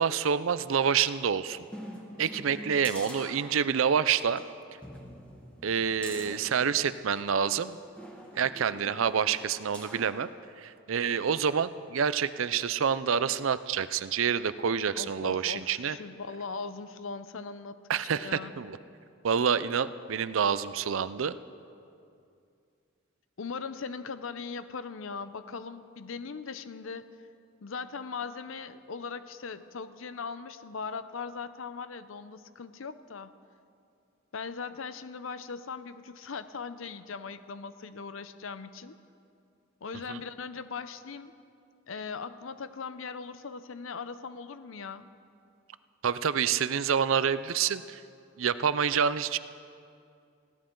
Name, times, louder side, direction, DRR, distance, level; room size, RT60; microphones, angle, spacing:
voice 1, 0.0-1.6 2.2-4.4 5.6-7.8 8.4-10.3 10.6-16.0 17.9-18.8 19.2-21.4 40.1-40.2 46.0-48.0 48.4-49.4, right 7 dB, 75° right, 14 dB, 0.5 m, -27 dB
sound 1, 1.7-3.9 4.3-4.4 4.8-7.3 8.0-10.2 10.6-10.7, equal, 5° left, 1.6 m, -45 dB
voice 2, 15.0-17.8 18.1-18.6 23.4-27.1 27.6-33.3 34.3-39.0 39.8-41.3 41.9-45.1, left 5 dB, 75° left, 12 dB, 0.6 m, -39 dB
20.0 x 16.0 x 3.8 m, 2.5 s
head